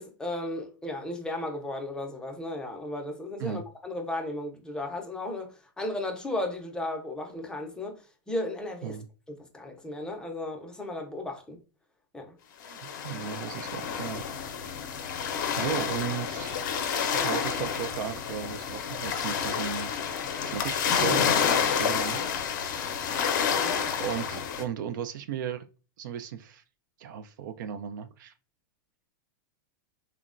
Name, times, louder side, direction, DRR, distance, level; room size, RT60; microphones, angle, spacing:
voice 1, 0.0-9.0 9.3-11.6 12.1-12.3 23.6-24.0, left 1 dB, 5° left, 0.4 m, -35 dB
sound 1, 12.6-24.6, left 7 dB, 70° left, 0.5 m, -29 dB
voice 2, 12.7-14.2 15.6-19.9 20.4-22.5 24.0-25.7 26.0-26.6 27.0-28.3, right 9 dB, 70° right, 0.4 m, -36 dB
2.9 x 2.1 x 2.4 m
hypercardioid pair, 135°, 11 cm